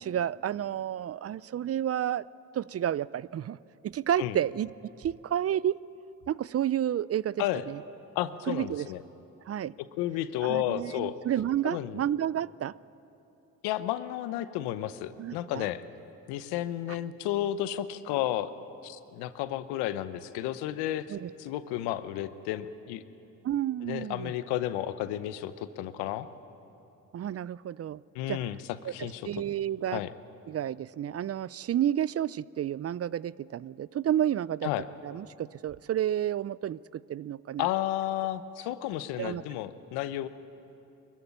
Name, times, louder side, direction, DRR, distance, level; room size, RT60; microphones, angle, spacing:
voice 1, 0.0-2.3 2.5-3.6 3.8-4.7 5.0-5.8 6.3-7.8 8.5-8.9 9.5-9.7 10.4-12.7 15.2-15.7 16.9-17.0 21.1-21.3 23.4-24.3 27.1-28.0 28.3-28.4 28.8-30.0 30.5-34.7 35.0-37.7 39.2-39.4, right 11 dB, 40° right, 21 dB, 0.4 m, -31 dB
voice 2, 8.1-9.0 10.0-11.2 11.6-12.0 13.6-15.8 16.3-18.5 18.8-23.0 23.8-26.3 28.1-28.6 28.8-29.3 29.9-30.1 34.6-34.8 37.6-40.3, left 13 dB, 90° left, 13 dB, 0.9 m, -32 dB
22.5 x 15.0 x 10.0 m, 2.9 s
supercardioid pair, 60°, 38 cm